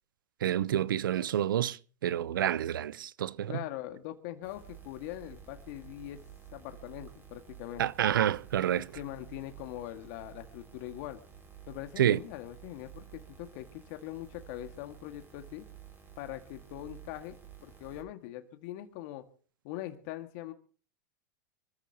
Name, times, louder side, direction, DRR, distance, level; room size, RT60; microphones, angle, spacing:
voice 1, 0.4-1.8 2.0-3.5 7.8-8.9 12.0-12.2, right 11 dB, 85° right, 0.7 m, -28 dB
voice 2, 3.5-6.2 6.5-7.8 8.8-11.2 11.7-15.7 16.2-19.2 19.6-20.5, left 14 dB, 55° left, 1.9 m, -42 dB
sound 1, 4.4-18.0, right 9 dB, 20° right, 5.6 m, -52 dB
26.0 x 14.5 x 2.9 m
hypercardioid pair, 120°, 11 cm